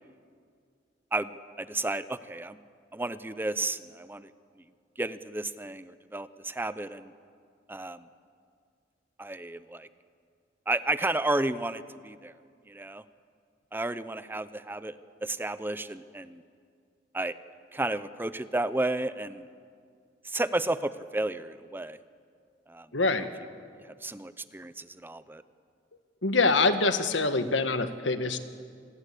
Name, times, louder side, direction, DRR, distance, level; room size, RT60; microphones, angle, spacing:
voice 1, 1.6-2.6 2.9-4.3 5.0-7.1 7.7-8.0 9.2-9.9 10.7-12.3 12.7-13.0 13.7-14.9 15.2-16.4 17.1-17.4 17.7-19.5 20.2-22.0 22.7-22.9 23.2-23.3 24.0-25.4, right 2 dB, 10° right, 14 dB, 0.6 m, -32 dB
voice 2, 22.9-23.3 26.2-28.4, left 3 dB, 90° left, 9 dB, 1.6 m, -25 dB
26.5 x 20.0 x 8.3 m, 2.2 s
head